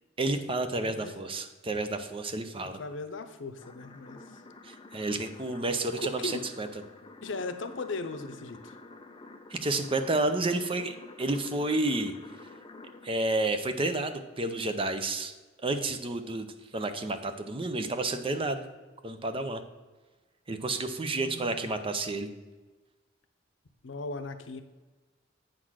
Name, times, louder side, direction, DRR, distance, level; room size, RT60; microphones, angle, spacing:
voice 1, 0.2-2.8 4.6-6.7 9.5-12.1 13.0-15.3 15.6-16.5 16.7-18.7 19.0-19.6 20.5-22.3, right 2 dB, 30° right, 8 dB, 0.6 m, -30 dB
voice 2, 0.8-1.2 2.6-4.4 6.0-6.4 7.2-8.8 21.1-21.7 23.8-24.6, left 3 dB, 80° left, 9 dB, 0.7 m, -38 dB
sound 1, 3.6-13.1, left 2 dB, 25° left, 0.5 m, -50 dB
8.6 x 4.0 x 6.3 m, 1.2 s
head